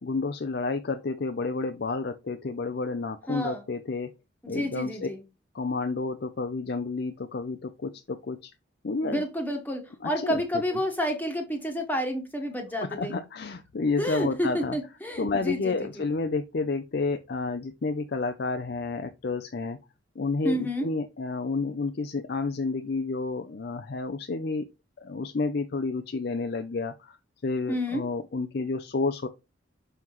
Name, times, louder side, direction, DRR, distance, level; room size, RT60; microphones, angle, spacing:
voice 1, 0.0-4.1 4.5-5.1 5.5-8.5 8.8-9.2 10.0-10.4 13.0-14.8 15.2-19.8 20.2-24.6 25.0-27.2 27.4-29.3, left 3 dB, 55° left, 0.5 m, -30 dB
voice 2, 3.3-3.6 4.4-5.2 9.0-13.2 14.0-16.0 20.4-20.9 27.7-28.0, equal, 10° left, 1.2 m, -30 dB
6.2 x 5.6 x 3.0 m
head